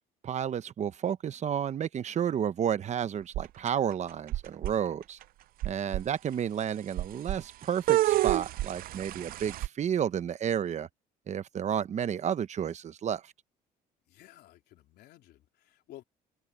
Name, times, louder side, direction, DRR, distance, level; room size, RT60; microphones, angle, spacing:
voice 1, 0.2-5.2 5.6-10.9 11.3-13.2, right 9 dB, 45° right, 0.9 m, -31 dB
sound 1, 3.3-3.9 4.3-4.7 5.2-5.3 5.6-6.0 7.0-7.4 7.9-9.7, right 16 dB, 60° right, 0.4 m, -28 dB
voice 2, 14.1-16.0, left 14 dB, 75° left, 3.5 m, -53 dB
cardioid pair, 110°, 17 cm